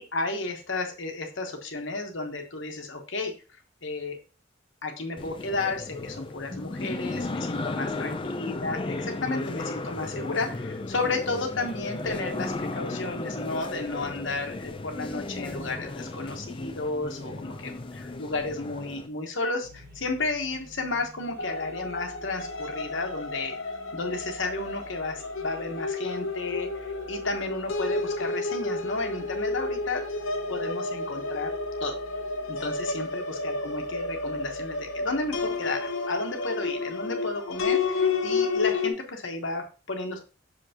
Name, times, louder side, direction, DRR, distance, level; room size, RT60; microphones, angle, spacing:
voice 1, 0.0-3.3 3.8-4.2 4.8-23.6 23.9-30.0 30.5-31.5 31.8-32.0 32.5-40.2, left 3 dB, 65° left, 4 dB, 1.2 m, -32 dB
sound 1, 5.2-19.1, left 2 dB, 25° left, 0.5 m, -35 dB
sound 2, 19.6-35.7, equal, 50° right, 1.6 m, -50 dB
sound 3, 21.4-38.9, left 3 dB, 85° left, 0.9 m, -31 dB
6.4 x 5.5 x 2.9 m, 0.35 s
head